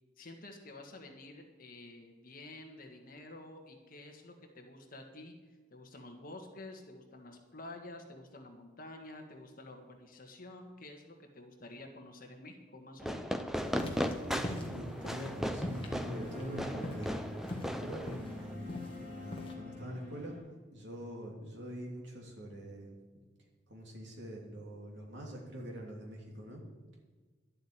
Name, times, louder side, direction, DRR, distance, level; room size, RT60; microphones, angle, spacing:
voice 1, 0.2-5.3 5.7-13.4, left 2 dB, 45° left, 3 dB, 1.7 m, -50 dB
Fireworks, 13.0-18.5, equal, ahead, 0.5 m, -37 dB
sound 1, 13.7-19.5, left 1 dB, 25° left, 1.6 m, -43 dB
voice 2, 14.2-20.4 20.7-23.0 23.7-26.6, equal, 60° right, -1 dB, 3.1 m, -44 dB
sound 2, 14.8-20.4, left 2 dB, 40° right, 4.5 m, -47 dB
12.0 x 7.8 x 8.9 m, 1.4 s
head